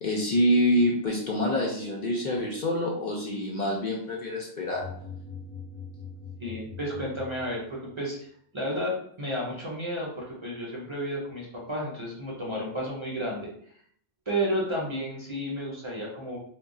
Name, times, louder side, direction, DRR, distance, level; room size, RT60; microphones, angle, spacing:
voice 1, 0.0-4.9, equal, 55° left, -2 dB, 0.6 m, -26 dB
sound 1, 4.7-8.0, left 5 dB, 40° left, 1.0 m, -42 dB
voice 2, 6.4-8.2 8.5-13.5 14.3-16.4, equal, 30° right, -4 dB, 0.7 m, -32 dB
2.3 x 2.2 x 3.6 m, 0.63 s
omnidirectional pair, 1.1 m